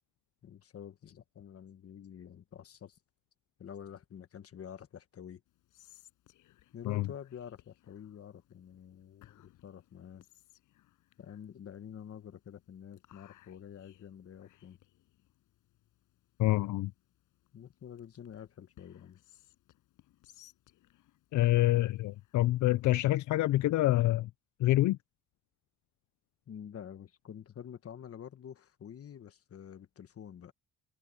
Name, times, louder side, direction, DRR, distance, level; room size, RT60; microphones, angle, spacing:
voice 1, 0.4-3.0 3.6-5.4 6.7-10.2 11.2-14.8 17.5-19.2 26.5-30.5, left 8 dB, 50° left, 1.4 m, -48 dB
Whispering, 5.5-23.0, left 15 dB, 90° left, 7.4 m, -65 dB
voice 2, 16.4-16.9 21.3-24.3 24.6-25.0, left 16 dB, 75° left, 0.5 m, -26 dB
cardioid pair, 90°, 30 cm